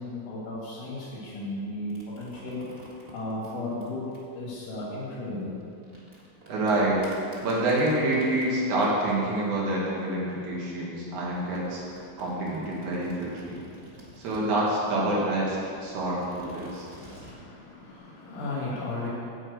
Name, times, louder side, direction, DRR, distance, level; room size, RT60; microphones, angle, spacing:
voice 1, 0.0-2.6 3.1-4.1 4.3-5.6 14.3-14.4 15.9-16.2 16.5-19.1, left 2 dB, 85° left, -9 dB, 3.5 m, -35 dB
sound 1, 1.9-4.2 5.5-10.4 11.1-15.0 15.6-17.4, right 1 dB, 30° right, 1.2 m, -49 dB
voice 2, 6.5-7.1 7.4-11.8 12.2-13.6 14.2-16.9, right 1 dB, 65° right, -5 dB, 3.3 m, -27 dB
8.8 x 5.4 x 8.0 m, 2.5 s
omnidirectional pair, 3.7 m